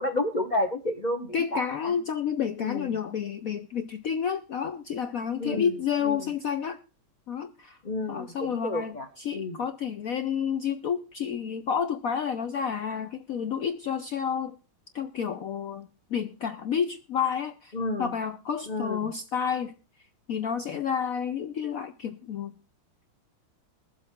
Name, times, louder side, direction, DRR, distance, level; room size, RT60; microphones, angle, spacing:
voice 1, 0.0-2.0 2.6-3.0 5.4-5.8 6.0-6.3 7.8-9.1 9.3-9.6 17.7-18.1 18.7-19.1, left 2 dB, 40° left, 8 dB, 0.6 m, -31 dB
voice 2, 1.3-6.8 7.3-7.8 8.1-14.6 14.9-17.7 18.0-19.7 20.3-22.5, left 7 dB, 80° left, 9 dB, 0.7 m, -30 dB
21.5 x 7.7 x 3.5 m, 0.33 s
omnidirectional pair, 2.4 m